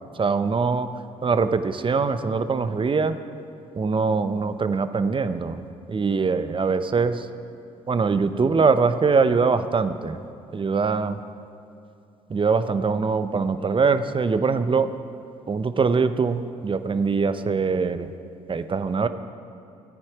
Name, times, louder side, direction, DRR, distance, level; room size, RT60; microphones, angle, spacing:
voice 1, 0.2-0.9 1.2-3.2 3.7-7.3 7.9-10.2 10.5-11.2 12.3-14.9 15.5-18.1 18.5-19.1, right 4 dB, 30° right, 11 dB, 0.7 m, -23 dB
14.5 x 8.9 x 4.9 m, 2.6 s
hypercardioid pair, 50°, 17 cm